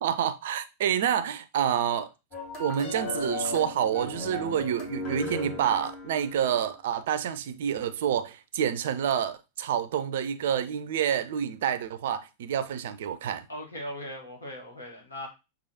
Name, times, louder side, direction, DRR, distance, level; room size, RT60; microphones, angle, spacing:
voice 1, 0.0-2.1 2.6-13.5, right 9 dB, 55° right, 0.5 m, -28 dB
sound 1, 2.3-6.7, left 2 dB, 40° left, 1.5 m, -36 dB
voice 2, 13.5-15.3, left 1 dB, 75° left, 1.4 m, -39 dB
6.2 x 2.5 x 2.7 m
figure-of-eight pair, 90°, 0 cm